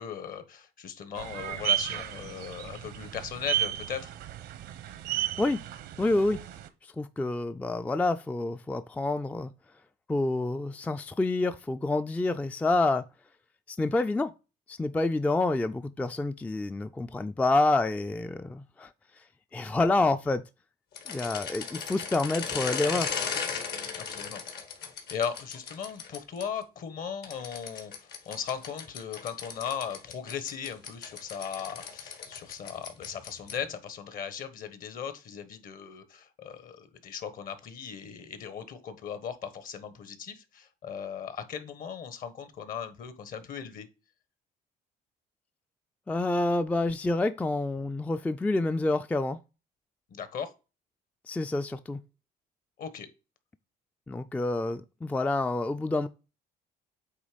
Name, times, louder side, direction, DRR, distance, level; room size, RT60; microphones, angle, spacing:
voice 1, 0.0-4.1 23.9-24.4 25.1-43.9 50.1-50.5 52.8-53.1, left 7 dB, 55° left, 1.2 m, -38 dB
sound 1, 1.2-6.7, right 11 dB, 80° right, 0.8 m, -33 dB
voice 2, 6.0-6.4 6.8-9.5 10.1-13.0 13.7-14.3 14.7-18.9 19.5-20.4 21.1-23.1 46.1-49.4 51.3-52.0 54.1-56.1, left 2 dB, 10° left, 0.3 m, -28 dB
sound 2, 20.9-26.4 27.2-33.7, left 6 dB, 75° left, 1.8 m, -37 dB
8.1 x 3.0 x 5.0 m
cardioid pair, 110°, 17 cm